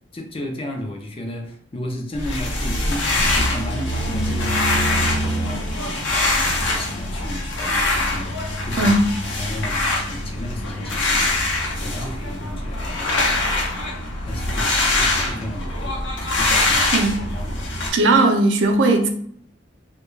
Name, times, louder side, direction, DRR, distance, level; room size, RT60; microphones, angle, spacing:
voice 1, 0.1-5.6 6.1-8.3 8.6-8.9 9.3-13.4 14.3-17.1 17.3-17.7, left 1 dB, 30° left, 0.5 m, -34 dB
sound 1, 2.1-17.9, left 2 dB, 80° left, 0.7 m, -23 dB
voice 2, 16.9-17.2 17.9-19.1, right 2 dB, 75° right, 0.4 m, -17 dB
2.3 x 2.2 x 3.0 m
head